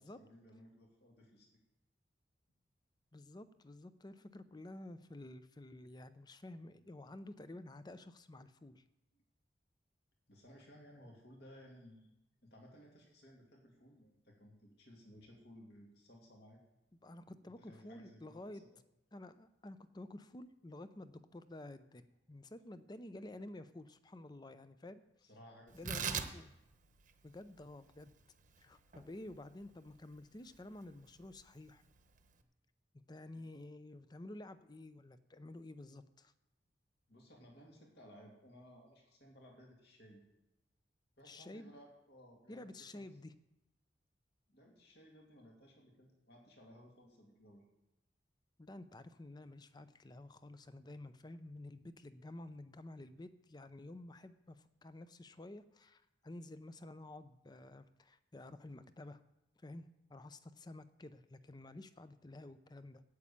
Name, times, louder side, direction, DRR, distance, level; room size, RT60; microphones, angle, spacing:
voice 1, 0.0-1.5 9.1-9.2 10.3-12.1 12.4-16.6 17.4-18.7 25.2-26.4 37.1-40.2 41.2-42.7 42.9-43.1 44.5-47.7, equal, 65° left, -1 dB, 2.4 m, -59 dB
voice 2, 3.1-8.8 17.0-18.6 19.1-25.3 25.7-26.5 27.2-28.1 28.6-31.8 33.1-36.3 41.2-41.7 42.5-43.3 48.6-59.2 59.6-63.0, left 1 dB, 25° left, 12 dB, 0.6 m, -51 dB
Tearing, 25.7-32.4, right 6 dB, 45° right, 0.9 m, -45 dB
9.5 x 7.3 x 8.5 m, 0.91 s
head